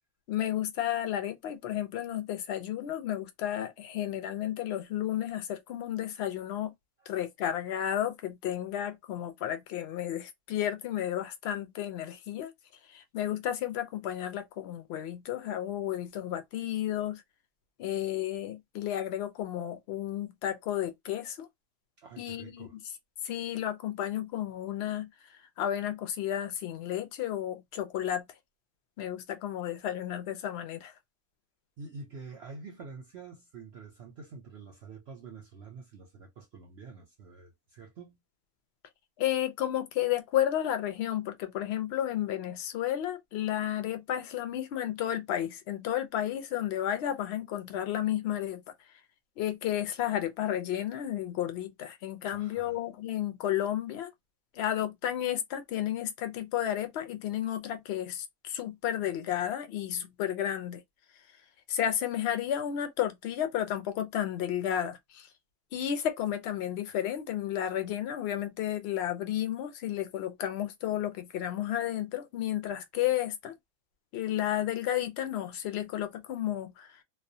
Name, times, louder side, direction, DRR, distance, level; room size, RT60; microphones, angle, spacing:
voice 1, 0.3-6.7 7.1-12.5 12.9-17.2 17.8-21.5 22.2-22.8 23.2-25.1 25.6-28.2 29.0-30.9 39.2-48.6 49.4-54.1 54.5-60.8 61.7-65.3 65.7-73.5 74.1-77.0, left 11 dB, 65° left, 0.7 m, -32 dB
voice 2, 22.0-22.7 31.8-38.2 52.3-52.8, right 4 dB, 60° right, 0.7 m, -47 dB
2.3 x 2.2 x 2.6 m
omnidirectional pair, 1.5 m